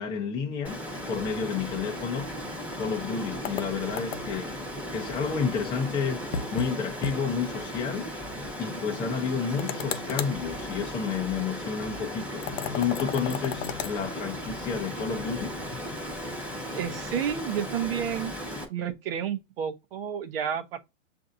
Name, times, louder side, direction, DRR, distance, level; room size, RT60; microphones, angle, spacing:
voice 1, 0.0-2.3 2.8-4.6 4.9-8.2 8.6-12.5 12.7-15.6, left 6 dB, 10° left, 0.6 m, -31 dB
Water, 0.6-18.6, equal, 5° right, 1.1 m, -36 dB
sound 1, 3.4-4.5 6.3-6.7 7.0-7.2 7.5-7.6 9.6-10.4 12.4-14.0, left 7 dB, 80° left, 0.8 m, -33 dB
voice 2, 16.7-18.3 18.7-20.8, right 8 dB, 50° right, 0.8 m, -31 dB
6.7 x 2.6 x 2.5 m
hypercardioid pair, 150°, 37 cm